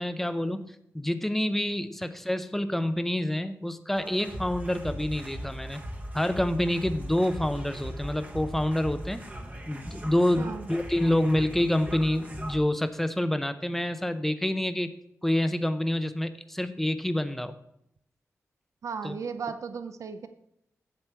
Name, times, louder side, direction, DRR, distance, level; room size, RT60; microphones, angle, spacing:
voice 1, 0.0-5.8 6.1-9.2 9.7-14.9 15.2-17.5 19.0-19.2, left 1 dB, 5° left, 10 dB, 0.6 m, -27 dB
sound 1, 3.9-12.6, equal, 30° right, 1.1 m, -39 dB
voice 2, 10.4-10.7 18.8-20.3, right 5 dB, 70° right, 10 dB, 0.6 m, -35 dB
8.0 x 7.3 x 4.5 m, 0.76 s
wide cardioid pair, 115°, 6 cm